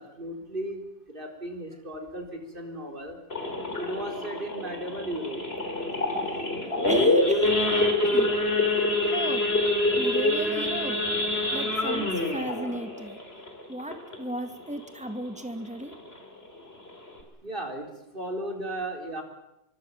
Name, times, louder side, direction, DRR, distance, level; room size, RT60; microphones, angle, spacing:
voice 1, 0.0-3.2 3.8-5.4 17.4-19.2, right 1 dB, 60° right, 3 dB, 4.6 m, -35 dB
Idling / Accelerating revving vroom / Sawing, 3.3-14.4 14.8-15.0 15.2-15.3 15.8-16.1 16.6-16.7 16.9-17.2, left 2 dB, 85° left, 4.5 m, -26 dB
voice 2, 6.6-8.3 9.1-9.5 10.0-11.0 11.5-13.2 13.7-15.9, right 1 dB, 5° right, 7 dB, 2.4 m, -36 dB
25.0 x 24.5 x 7.4 m, 0.88 s
omnidirectional pair, 1.0 m